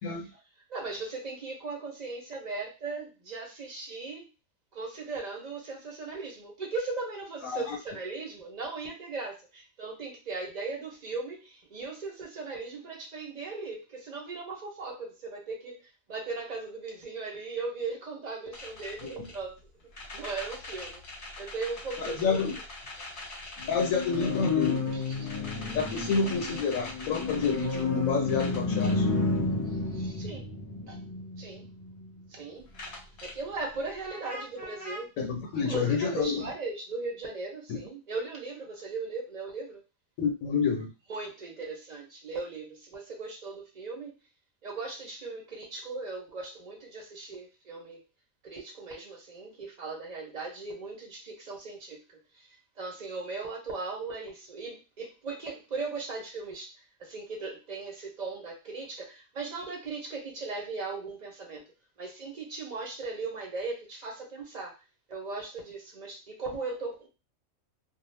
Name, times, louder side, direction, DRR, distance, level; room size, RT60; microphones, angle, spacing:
voice 1, 0.7-4.3 4.7-19.6 20.1-21.0 21.4-22.4 24.9-25.3 29.9-30.5 30.9-31.0 31.4-31.6 32.3-32.7 33.2-35.1 35.6-39.8 41.1-44.1 44.6-48.0 48.4-52.5 52.8-56.7 57.0-61.6 62.0-64.7 65.1-67.1, right 3 dB, 40° right, -1 dB, 0.7 m, -38 dB
sound 1, 18.5-19.3 20.0-32.2 32.8-33.3 34.0-35.0, left 3 dB, 45° left, 0.9 m, -32 dB
voice 2, 22.0-22.6 23.7-25.0 25.7-29.1 35.2-36.4 37.7-37.8 40.2-40.9, left 5 dB, 90° left, 2 dB, 1.1 m, -29 dB
2.4 x 2.0 x 3.1 m, 0.30 s
omnidirectional pair, 1.4 m